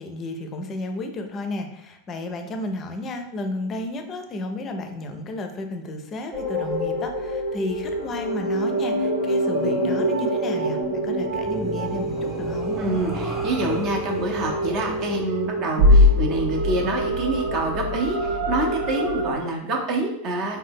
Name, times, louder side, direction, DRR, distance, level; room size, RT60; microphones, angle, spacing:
voice 1, 0.0-12.8, left 2 dB, 35° left, 6 dB, 0.4 m, -32 dB
sound 1, 6.3-19.3, left 1 dB, 75° right, 0.8 m, -24 dB
sound 2, 8.3-17.2, equal, 5° right, 0.8 m, -38 dB
voice 2, 12.8-20.6, right 2 dB, 45° right, 1 dB, 0.6 m, -26 dB
2.7 x 2.2 x 3.5 m, 0.81 s
hypercardioid pair, 95°, 0 cm